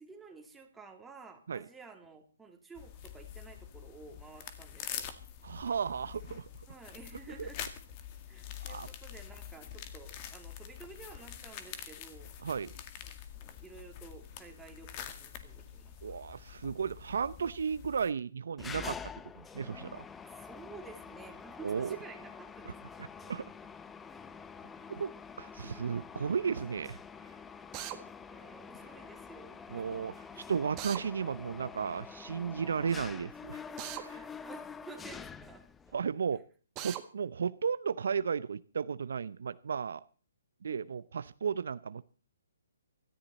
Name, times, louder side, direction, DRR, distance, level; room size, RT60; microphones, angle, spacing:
voice 1, 0.0-5.1 6.7-7.6 8.3-12.3 13.0-16.0 20.4-23.1 28.3-30.0 30.3-30.5 34.1-36.0 36.3-36.4 40.6-41.0, right 4 dB, 5° right, 2 dB, 2.6 m, -52 dB
sound 1, 2.8-18.1, left 9 dB, 30° left, 1.9 m, -46 dB
voice 2, 5.4-6.5 7.4-7.5 8.6-8.9 12.4-12.7 16.0-19.0 19.5-20.0 21.6-22.0 23.3-23.5 24.9-25.1 25.4-27.0 29.7-30.1 30.5-33.6 33.9-34.2 35.9-36.4 36.8-40.0 40.6-42.0, right 6 dB, 70° right, 15 dB, 0.6 m, -34 dB
Mechanisms, 18.6-36.0, left 6 dB, 10° left, 0.6 m, -47 dB
Drill, 27.7-28.0 30.8-31.0 33.8-34.1 36.8-37.0, right 13 dB, 25° right, 1.6 m, -39 dB
17.0 x 14.0 x 4.2 m, 0.39 s
hypercardioid pair, 145°, 0 cm